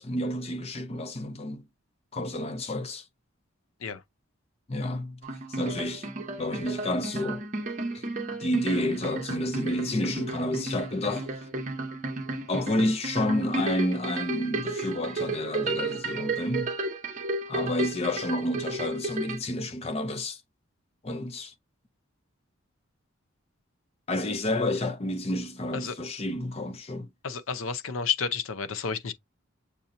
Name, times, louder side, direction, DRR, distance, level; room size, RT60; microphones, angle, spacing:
voice 1, 0.0-1.7 2.1-3.1 4.7-5.2 5.5-6.1 6.4-7.4 7.9-8.0 8.4-11.5 12.5-16.7 17.5-20.4 21.0-21.5 24.1-27.1, left 1 dB, 30° left, 0.5 m, -30 dB
sound 1, 5.2-19.4, right 2 dB, 35° right, 0.8 m, -33 dB
voice 2, 27.2-29.1, left 6 dB, 80° left, 0.6 m, -31 dB
6.8 x 2.8 x 2.6 m
head